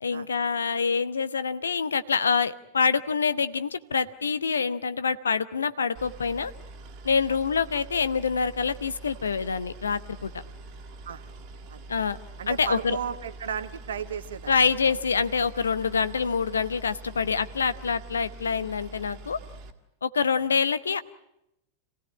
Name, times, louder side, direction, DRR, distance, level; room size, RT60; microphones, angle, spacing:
voice 1, 0.0-6.5 7.0-10.3 11.9-12.2 12.5-13.0 14.5-19.4 20.0-21.0, left 5 dB, 70° left, 14 dB, 0.8 m, -26 dB
Boat Water vehicle, 5.9-19.7, right 2 dB, 40° right, 2.1 m, -44 dB
voice 2, 12.4-14.5 14.8-14.9, right 7 dB, 65° right, 12 dB, 1.3 m, -34 dB
26.5 x 17.0 x 9.6 m, 0.86 s
figure-of-eight pair, 90°, 0 cm